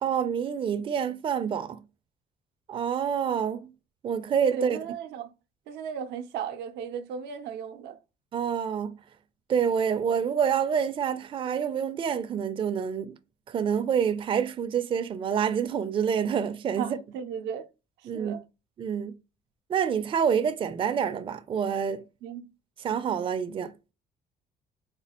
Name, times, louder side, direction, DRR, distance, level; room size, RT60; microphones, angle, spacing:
voice 1, 0.0-1.8 2.7-3.7 4.0-4.8 8.3-8.9 9.5-13.1 13.5-17.0 18.0-18.4 18.8-19.1 19.7-22.0 22.8-23.7, right 7 dB, 30° right, 0.4 m, -27 dB
voice 2, 4.5-5.3 5.7-8.0 16.8-17.7 18.1-18.4 22.2-22.5, right 7 dB, 90° right, 0.5 m, -36 dB
4.1 x 2.3 x 2.9 m
cardioid pair, 110°, 17 cm